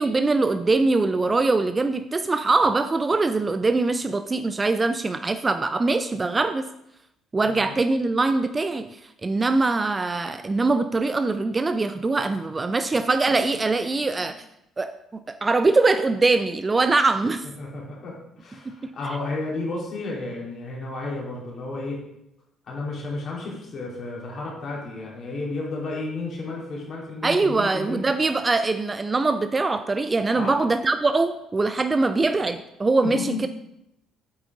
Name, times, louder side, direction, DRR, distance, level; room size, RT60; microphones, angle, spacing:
voice 1, 0.0-6.7 7.3-8.9 9.2-14.4 14.8-17.4 18.7-18.9 27.2-33.5, right 3 dB, 25° right, 10 dB, 0.5 m, -22 dB
voice 2, 17.6-22.0 22.7-28.0 30.3-30.6 33.0-33.5, left 2 dB, 45° left, -3 dB, 3.4 m, -32 dB
8.8 x 8.2 x 3.8 m, 0.83 s
figure-of-eight pair, 45°, 0 cm